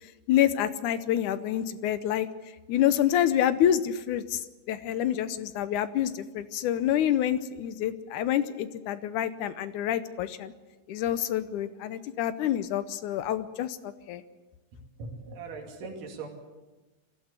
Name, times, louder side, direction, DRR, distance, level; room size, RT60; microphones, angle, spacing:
voice 1, 0.3-2.3 2.7-4.4 4.7-10.5 10.9-14.2, left 11 dB, 75° left, 13 dB, 2.1 m, -27 dB
voice 2, 15.0-16.3, right 4 dB, 70° right, 1 dB, 4.1 m, -39 dB
22.0 x 15.5 x 8.3 m, 1.2 s
omnidirectional pair, 3.9 m